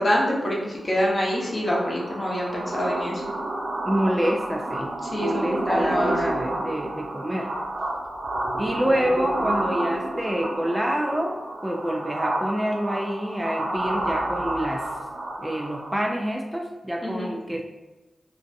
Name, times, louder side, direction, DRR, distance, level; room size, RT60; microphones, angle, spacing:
voice 1, 0.0-3.2 5.1-6.1 17.0-17.3, equal, 45° left, -3 dB, 0.8 m, -25 dB
sound 1, 0.9-16.2, right 1 dB, 75° right, 0.5 m, -30 dB
voice 2, 3.9-4.9 5.2-7.5 8.6-11.4 11.6-14.9 15.4-17.6, equal, 10° right, 1 dB, 0.4 m, -27 dB
2.5 x 2.2 x 2.6 m, 1.1 s
cardioid pair, 40°, 0 cm